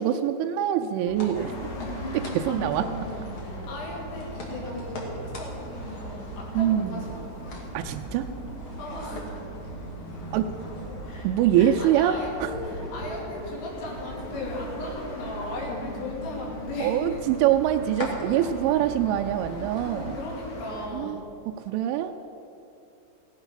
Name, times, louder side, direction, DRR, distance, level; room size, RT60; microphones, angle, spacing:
voice 1, 0.0-1.5 2.1-2.9 6.6-7.0 7.7-8.3 10.3-10.5 11.2-12.2 12.4-12.5 16.8-20.2 20.9-21.2 21.7-22.1, right 11 dB, 85° right, 5 dB, 2.9 m, -24 dB
sound 1, 1.1-20.2, right 1 dB, 45° left, 1.8 m, -38 dB
sound 2, 1.3-20.9, left 1 dB, 60° left, 4.5 m, -43 dB
voice 2, 2.5-7.5 8.8-9.4 11.0-11.3 11.6-17.2 20.1-21.2, left 2 dB, 90° left, -3 dB, 5.5 m, -37 dB
16.5 x 12.5 x 5.7 m, 2.7 s
omnidirectional pair, 5.7 m